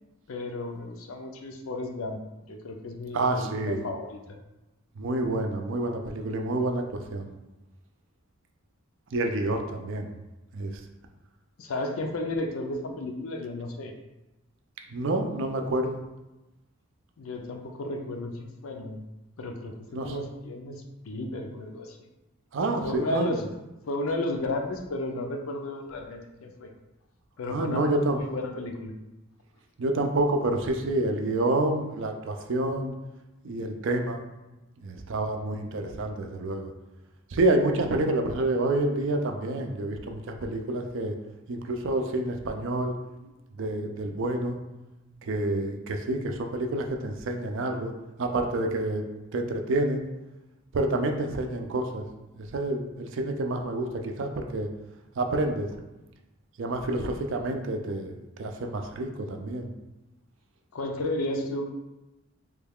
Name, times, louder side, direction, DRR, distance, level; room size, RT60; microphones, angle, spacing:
voice 1, 0.3-4.4 11.6-13.9 17.2-19.0 19.4-22.0 22.8-23.4 23.9-26.7 27.4-28.9 60.7-61.7, left 2 dB, 80° left, 3 dB, 0.5 m, -33 dB
voice 2, 3.1-3.9 5.0-6.8 7.1-7.3 9.1-10.1 10.5-10.8 14.9-16.0 19.9-20.1 22.5-23.4 27.5-28.2 29.8-32.9 33.4-34.2 34.8-36.7 37.3-41.1 41.5-42.9 43.2-44.6 45.1-47.9 48.2-50.1 50.7-52.1 52.4-54.7 55.2-55.7 56.6-58.1 58.4-59.7, right 2 dB, 60° right, 4 dB, 0.4 m, -28 dB
3.2 x 2.3 x 3.5 m, 1.0 s
head